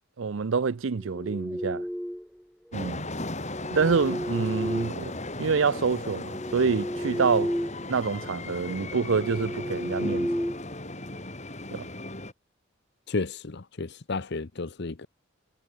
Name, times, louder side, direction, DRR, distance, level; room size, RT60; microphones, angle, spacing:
voice 1, 0.2-1.8 2.7-3.1 3.7-5.1 5.4-7.5 7.9-10.3 11.7-11.9, right 5 dB, 65° right, 0.5 m, -26 dB
sound 1, 0.9-2.4 3.4-5.5 6.0-7.9 8.2-8.4 8.9-11.3, equal, ahead, 2.8 m, -33 dB
sound 2, 2.7-12.3, left 2 dB, 35° left, 6.9 m, -37 dB
voice 2, 13.1-15.1, left 3 dB, 55° left, 0.8 m, -32 dB
head